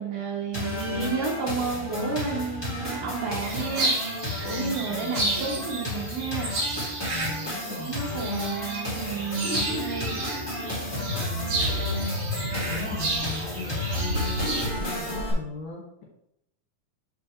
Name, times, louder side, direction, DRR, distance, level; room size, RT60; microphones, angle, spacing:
voice 1, 0.0-4.0 4.4-6.5 7.7-10.2, right 5 dB, 90° right, -4 dB, 3.1 m, -31 dB
sound 1, 0.5-15.3, left 1 dB, 10° left, 1.2 m, -33 dB
sound 2, 3.4-14.6, right 2 dB, 60° right, 3.5 m, -32 dB
voice 2, 4.7-5.3 7.1-8.2 11.1-11.7 12.2-12.3 12.7-16.1, left 3 dB, 70° left, -1 dB, 3.0 m, -39 dB
sound 3, 7.3-7.8 8.4-15.2, equal, 20° right, 2.7 m, -33 dB
7.2 x 5.6 x 3.2 m, 0.78 s
omnidirectional pair, 3.6 m